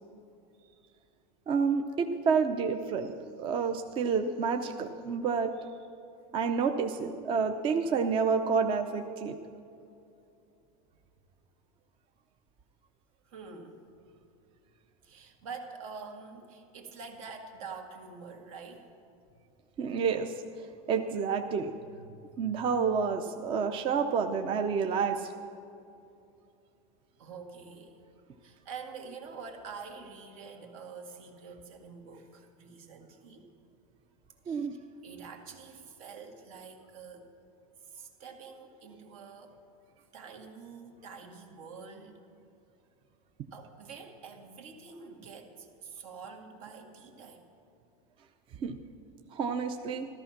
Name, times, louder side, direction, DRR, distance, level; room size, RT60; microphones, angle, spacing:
voice 1, 1.5-3.1 3.4-5.7 6.3-9.4 19.8-20.3 20.9-21.7 22.4-25.3 34.5-34.7 48.6-48.8 49.3-50.1, right 5 dB, 30° right, 6 dB, 0.6 m, -29 dB
voice 2, 13.2-13.8 15.0-18.9 21.9-22.6 27.2-28.0 28.4-33.5 34.4-37.3 37.8-39.6 40.0-42.2 43.5-47.5, right 5 dB, 75° right, 3 dB, 2.1 m, -46 dB
14.0 x 13.5 x 5.9 m, 2.6 s
supercardioid pair, 150°, 18 cm